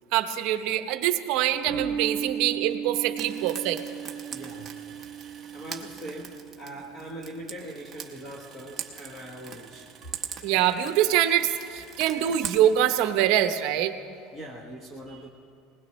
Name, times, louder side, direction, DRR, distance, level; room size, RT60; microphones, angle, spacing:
voice 1, 0.1-3.8 10.4-13.9, right 11 dB, 50° right, 8 dB, 0.8 m, -24 dB
sound 1, 1.7-8.4, right 8 dB, 35° right, 1.8 m, -37 dB
Frying (food), 3.1-13.1, right 7 dB, 20° right, 0.9 m, -42 dB
voice 2, 3.8-5.1 5.5-9.9 14.1-15.3, right 1 dB, 15° left, -1 dB, 1.1 m, -42 dB
20.0 x 20.0 x 3.1 m, 2.5 s
cardioid pair, 170°, 0 cm